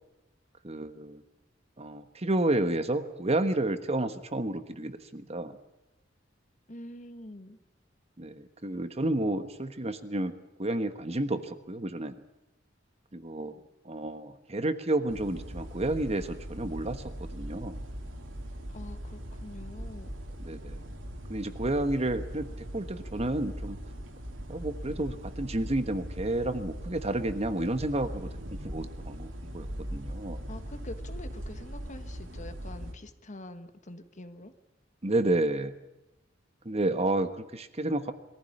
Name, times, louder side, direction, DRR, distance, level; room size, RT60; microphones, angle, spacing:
voice 1, 0.6-1.2 1.8-5.6 8.2-10.3 10.6-12.1 13.1-13.6 13.8-17.0 17.3-17.8 20.4-20.8 21.3-22.5 22.7-23.8 24.5-30.4 35.0-35.7 36.6-38.1, right 1 dB, 35° right, 10 dB, 1.3 m, -30 dB
voice 2, 6.7-7.6 18.7-20.1 30.5-34.5, left 1 dB, 40° left, 10 dB, 1.5 m, -45 dB
sound 1, 15.1-32.9, equal, 90° right, 2.6 m, -40 dB
22.5 x 15.0 x 10.0 m, 0.95 s
head